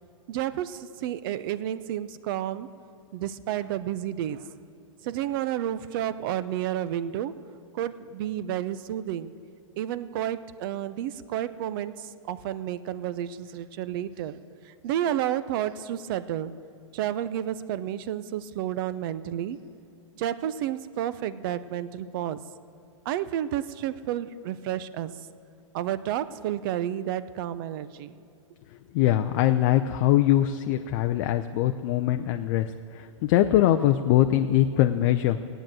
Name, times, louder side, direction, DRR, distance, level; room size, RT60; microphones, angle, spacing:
voice 1, 0.3-2.7 3.1-4.5 5.0-7.3 7.7-9.3 9.8-14.4 14.6-16.5 16.9-19.6 20.2-22.4 23.0-25.1 25.7-28.1, right 11 dB, 40° right, 15 dB, 0.6 m, -31 dB
voice 2, 28.9-32.7 33.2-35.4, left 13 dB, 35° left, 7 dB, 0.5 m, -22 dB
16.5 x 9.1 x 7.7 m, 2.4 s
hypercardioid pair, 135°, 17 cm